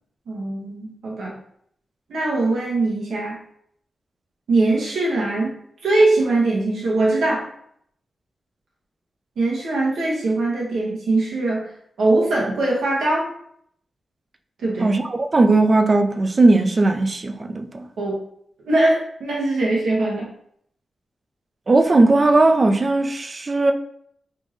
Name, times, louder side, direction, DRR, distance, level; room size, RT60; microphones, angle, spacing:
voice 1, 0.3-1.4 2.1-3.4 4.5-5.5 5.8-7.5 9.4-11.7 12.0-13.3 14.6-14.9 18.0-18.2 18.6-20.3, right 2 dB, 85° right, 1.1 m, -21 dB
voice 2, 14.8-17.9 21.7-23.7, right 2 dB, 40° right, 0.4 m, -17 dB
3.5 x 2.5 x 3.2 m
cardioid pair, 75°, 0 cm